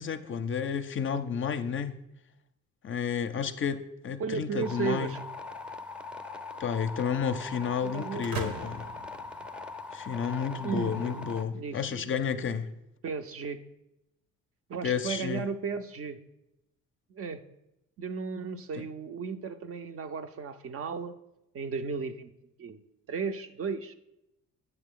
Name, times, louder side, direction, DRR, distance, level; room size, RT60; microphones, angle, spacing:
voice 1, 0.0-2.0 2.8-5.2 6.6-8.8 9.9-12.7 14.8-15.5 18.8-18.9, left 7 dB, 40° left, 0.5 m, -31 dB
voice 2, 4.2-5.2 7.8-8.6 10.6-12.2 13.0-13.6 14.7-16.2 17.1-17.4 18.0-21.1 21.5-22.3 22.6-22.8 23.1-23.9, right 5 dB, 50° right, 0.6 m, -35 dB
sound 1, 4.6-11.4, left 4 dB, 5° right, 0.6 m, -41 dB
sound 2, 8.2-10.2, right 2 dB, 75° right, 1.1 m, -40 dB
8.0 x 6.6 x 3.7 m
cardioid pair, 90°, 30 cm